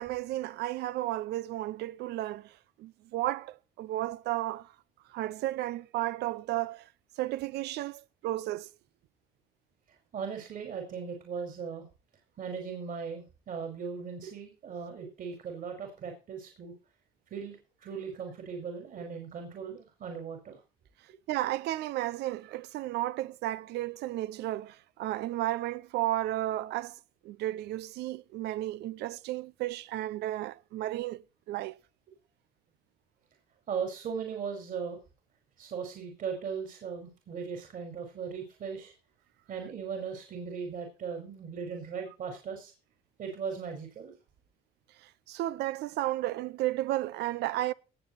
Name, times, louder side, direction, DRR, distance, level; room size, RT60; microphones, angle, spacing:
voice 1, 0.0-4.7 5.1-6.9 7.2-8.7 21.3-31.8 45.0-47.7, right 15 dB, 80° right, 0.7 m, -33 dB
voice 2, 10.1-11.9 12.4-16.7 17.3-20.6 33.7-35.0 35.6-38.9 39.5-42.7 43.2-44.1, right 6 dB, 55° right, 5.0 m, -38 dB
19.0 x 7.7 x 4.3 m
cardioid pair, 110°, 17 cm